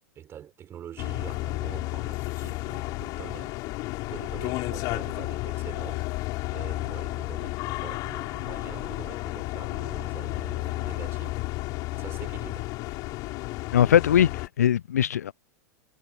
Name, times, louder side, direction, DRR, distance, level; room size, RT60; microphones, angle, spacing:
voice 1, 0.2-3.5 4.1-6.1 6.5-11.4 11.9-12.7, right 10 dB, 25° right, 5.8 m, -44 dB
sound 1, 1.0-14.5, left 22 dB, 40° left, 6.6 m, -32 dB
voice 2, 13.7-15.3, left 10 dB, 70° left, 0.4 m, -21 dB
figure-of-eight pair, 95°, 9 cm